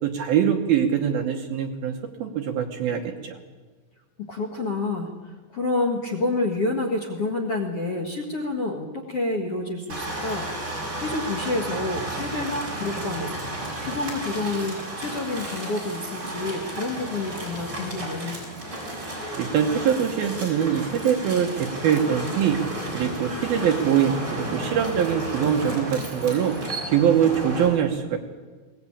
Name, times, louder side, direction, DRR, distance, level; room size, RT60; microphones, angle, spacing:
voice 1, 0.0-3.4 19.4-22.6 22.9-26.6 26.9-28.2, right 8 dB, 65° right, 3 dB, 2.6 m, -23 dB
voice 2, 4.2-13.3 13.8-18.4, left 2 dB, 50° left, 3 dB, 1.8 m, -29 dB
sound 1, 9.9-27.7, right 1 dB, 20° right, 6.4 m, -33 dB
22.0 x 18.5 x 8.7 m, 1.4 s
omnidirectional pair, 5.3 m